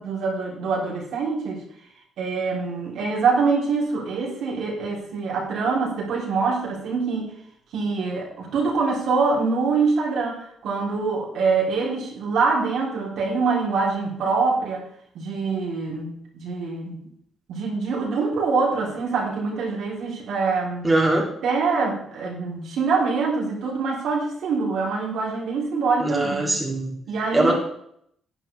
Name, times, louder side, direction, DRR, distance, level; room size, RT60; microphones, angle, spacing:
voice 1, 0.0-1.6 2.2-7.3 7.7-14.8 15.1-17.0 17.5-20.9 21.4-26.6 27.1-27.6, right 4 dB, 75° right, -3 dB, 3.7 m, -24 dB
voice 2, 20.8-21.3 26.0-26.9 27.3-27.6, right 2 dB, 20° right, -2 dB, 3.0 m, -21 dB
12.0 x 8.9 x 3.5 m, 0.69 s
cardioid pair, 90°, 0 cm